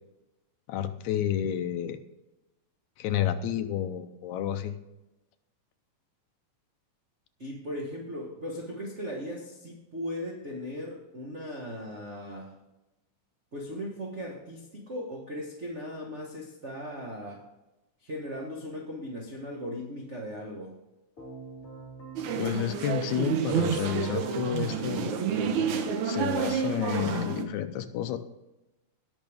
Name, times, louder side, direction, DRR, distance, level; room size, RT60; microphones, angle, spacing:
voice 1, 0.7-2.0 3.0-4.8 22.4-25.2 26.0-28.2, left 10 dB, 75° left, 9 dB, 1.9 m, -30 dB
voice 2, 7.4-12.5 13.5-17.4 18.0-20.8, equal, 35° right, -1 dB, 1.1 m, -38 dB
Keyboard (musical), 21.2-26.1, right 3 dB, 25° left, 3.5 m, -48 dB
sound 1, 22.2-27.4, right 7 dB, 75° right, 2.2 m, -29 dB
18.0 x 6.2 x 3.5 m, 0.98 s
omnidirectional pair, 3.6 m